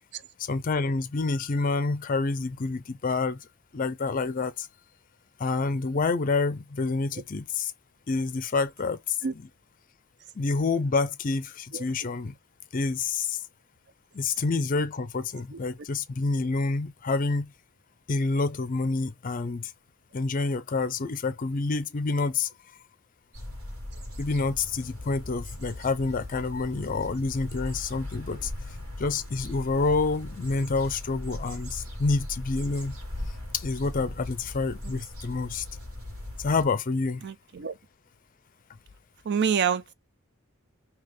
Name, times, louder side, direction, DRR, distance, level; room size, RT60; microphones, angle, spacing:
voice 1, 0.4-3.4 3.7-4.7 5.4-7.7 8.1-9.0 10.4-12.3 12.7-13.4 14.1-17.5 18.1-19.7 20.1-22.5 24.2-28.5 29.0-32.9 33.5-35.6 36.4-37.2, left 3 dB, 40° left, 0.5 m, -28 dB
sound 1, 23.3-36.6, left 1 dB, 85° right, 1.7 m, -39 dB
voice 2, 37.2-37.7 39.2-39.9, right 7 dB, 50° right, 0.4 m, -28 dB
3.3 x 2.9 x 3.7 m
head